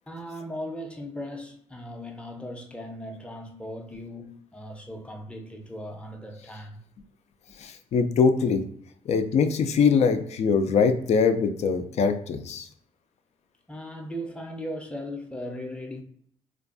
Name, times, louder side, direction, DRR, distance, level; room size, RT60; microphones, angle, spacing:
voice 1, 0.1-6.8 13.7-16.0, equal, 10° left, 0.5 m, -38 dB
voice 2, 7.6-8.6 9.1-12.7, left 5 dB, 60° left, 0.4 m, -22 dB
2.5 x 2.2 x 2.5 m
cardioid pair, 80°, 13 cm